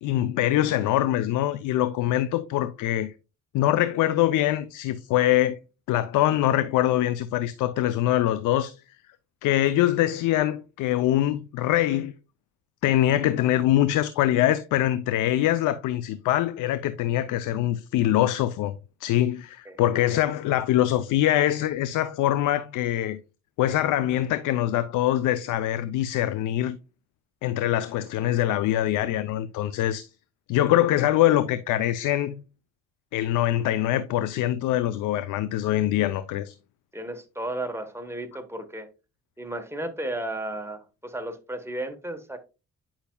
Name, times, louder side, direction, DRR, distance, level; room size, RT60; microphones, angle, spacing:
voice 1, 0.0-3.1 3.5-5.6 5.9-8.8 9.4-12.1 12.8-18.7 19.0-23.2 23.6-26.8 27.4-30.1 30.5-32.4 33.1-36.5, left 13 dB, 85° left, 0.5 m, -23 dB
voice 2, 36.9-38.9 39.4-42.4, right 1 dB, 10° right, 1.2 m, -34 dB
8.7 x 5.8 x 2.2 m
cardioid pair, 90°, 30 cm